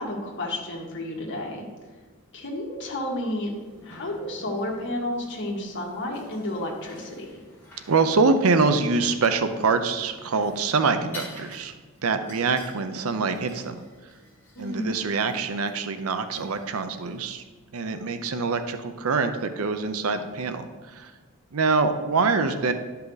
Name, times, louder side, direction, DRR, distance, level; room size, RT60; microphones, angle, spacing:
voice 1, 0.0-1.6 2.3-3.5 3.8-7.3 14.6-14.9, left 1 dB, 55° left, -1 dB, 1.8 m, -31 dB
sound 1, 3.3-17.2, left 1 dB, 10° left, 2.6 m, -50 dB
voice 2, 7.9-11.7 12.0-13.8 14.6-17.4 17.7-21.1 21.5-22.7, right 4 dB, 70° right, 9 dB, 0.6 m, -24 dB
11.5 x 5.6 x 4.0 m, 1.3 s
head